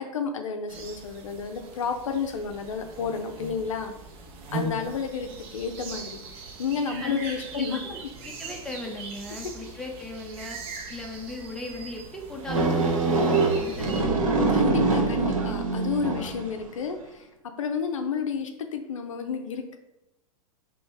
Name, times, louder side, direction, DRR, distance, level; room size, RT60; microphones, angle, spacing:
voice 1, 0.0-3.9 4.5-6.2 6.6-7.8 14.5-17.2 17.6-19.8, left 6 dB, 60° left, 6 dB, 0.5 m, -31 dB
sound 1, 0.7-14.0, right 2 dB, 30° right, 0.8 m, -40 dB
voice 2, 7.5-10.6 10.9-14.2, left 2 dB, 5° left, 0 dB, 0.6 m, -38 dB
sound 2, 12.5-16.5, right 3 dB, 65° right, 0.9 m, -24 dB
5.1 x 3.0 x 3.5 m, 0.96 s
figure-of-eight pair, 100°, 19 cm